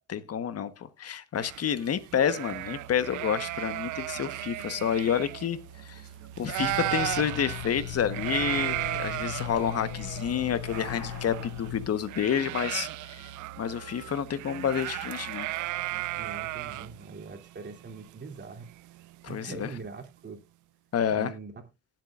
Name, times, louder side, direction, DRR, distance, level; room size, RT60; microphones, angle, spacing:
voice 1, 0.1-6.0 6.4-13.3 13.6-15.5 19.2-19.7 20.9-21.3, left 8 dB, 55° left, 1.3 m, -29 dB
sound 1, 1.4-6.1 6.4-19.3, right 17 dB, 80° right, 0.5 m, -35 dB
Musical instrument, 2.4-17.2, right 7 dB, 65° right, 2.4 m, -49 dB
sound 2, 6.6-11.9, left 12 dB, 85° left, 0.9 m, -38 dB
voice 2, 16.1-18.7 19.3-20.4 21.1-21.6, right 4 dB, 35° right, 3.1 m, -42 dB
18.5 x 7.6 x 2.5 m
cardioid pair, 90°, 30 cm